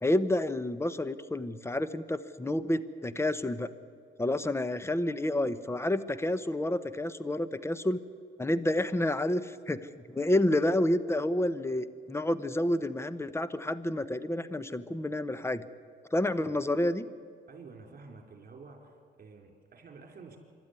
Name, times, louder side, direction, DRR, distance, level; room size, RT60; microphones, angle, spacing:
voice 1, 0.0-3.7 4.2-8.0 8.4-15.6 16.1-17.0, left 1 dB, 15° left, 14 dB, 1.0 m, -29 dB
voice 2, 16.2-16.6 17.5-20.4, right 4 dB, 45° right, 4 dB, 4.5 m, -50 dB
25.5 x 12.5 x 9.7 m, 2.3 s
cardioid pair, 90°, 20 cm